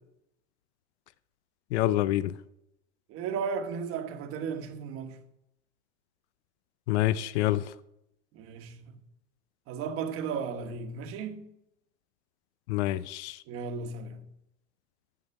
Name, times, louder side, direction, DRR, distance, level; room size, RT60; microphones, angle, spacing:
voice 1, 1.7-2.4 6.9-7.7 12.7-13.4, left 14 dB, 70° left, 0.6 m, -27 dB
voice 2, 3.1-5.2 8.3-9.0 9.7-11.5 13.5-14.3, right 5 dB, 40° right, 1.3 m, -35 dB
9.7 x 6.5 x 5.9 m
supercardioid pair, 125°, 35 cm